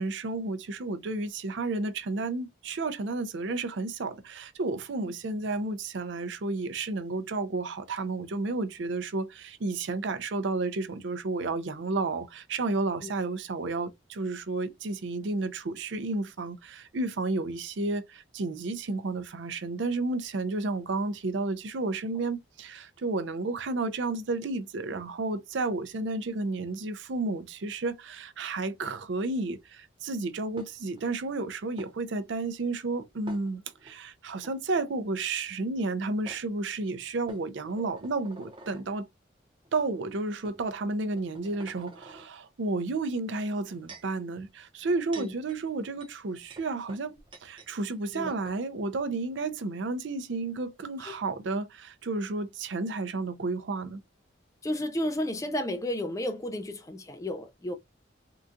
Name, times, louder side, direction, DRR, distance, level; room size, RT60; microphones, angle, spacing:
voice 1, 0.0-39.1 39.7-54.0, right 3 dB, 65° right, 0.5 m, -32 dB
sound 1, 30.6-31.0 31.8-31.9 33.3-33.9 34.3-34.5 35.8-35.9 36.3-36.4 37.3-38.9 39.6-39.8 40.4-40.6 41.1-42.3 43.4-44.2 44.8-47.7 48.0-48.1 48.3-48.6, right 2 dB, 25° right, 0.6 m, -48 dB
voice 2, 54.6-57.7, left 1 dB, 15° left, 0.4 m, -32 dB
3.8 x 2.3 x 2.5 m
head